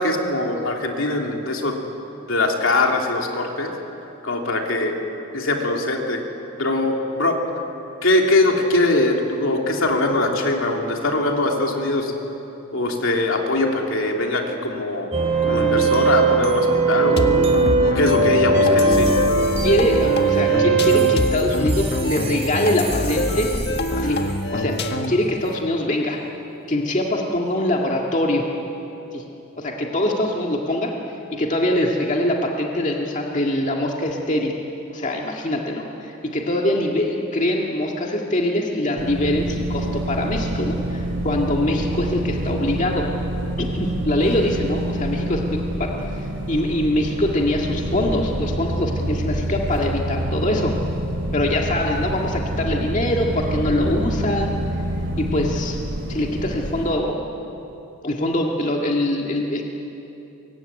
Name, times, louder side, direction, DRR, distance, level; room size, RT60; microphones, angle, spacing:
voice 1, 0.0-1.8 2.3-3.7 4.2-4.9 5.3-6.2 6.6-7.4 8.0-12.1 12.7-15.1 15.4-17.3 17.8-19.1, left 2 dB, 70° left, 1 dB, 3.2 m, -22 dB
sound 1, 15.1-24.0, right 3 dB, 30° right, 2.4 m, -20 dB
sound 2, 17.2-25.3, left 1 dB, 50° left, 1.7 m, -25 dB
voice 2, 19.6-23.5 24.0-24.8 25.1-26.2 26.7-28.4 29.1-29.2 29.6-30.9 31.3-34.6 34.9-43.1 43.6-50.7 51.3-54.5 55.2-55.8 56.1-57.2 58.0-59.6, left 1 dB, 35° left, 0 dB, 1.9 m, -23 dB
sound 3, 39.0-57.0, right 1 dB, 60° right, 2.5 m, -27 dB
24.5 x 22.5 x 9.9 m, 3.0 s
head